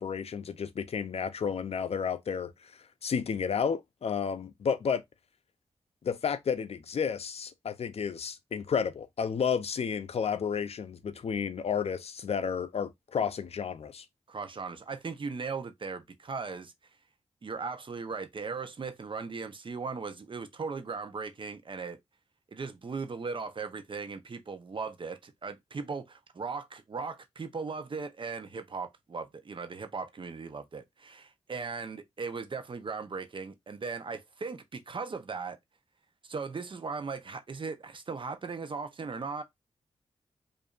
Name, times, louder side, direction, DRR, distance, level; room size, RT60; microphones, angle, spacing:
voice 1, 0.0-2.5 3.0-5.0 6.0-14.0, left 6 dB, 65° left, 0.5 m, -31 dB
voice 2, 14.3-16.7 17.4-22.0 22.5-35.6 36.2-39.4, right 4 dB, 50° right, 0.7 m, -38 dB
5.1 x 2.6 x 2.4 m
wide cardioid pair, 85°, 11 cm